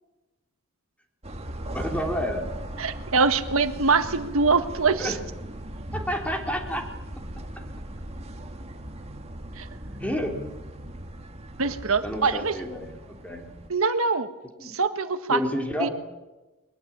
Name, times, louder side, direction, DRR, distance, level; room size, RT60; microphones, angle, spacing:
sound 1, 1.2-13.7, right 1 dB, 30° right, 2.2 m, -38 dB
voice 1, 1.7-2.6 5.0-5.2 5.9-6.8 10.0-10.3 12.0-13.0 13.2-13.4 14.6-14.7 15.3-15.9, equal, 5° left, 2 dB, 3.6 m, -29 dB
voice 2, 2.8-5.2 9.6-9.7 11.6-12.5 13.7-14.3 14.6-15.4 15.8-15.9, right 4 dB, 70° right, 9 dB, 1.7 m, -23 dB
22.5 x 21.5 x 8.8 m, 1.1 s
head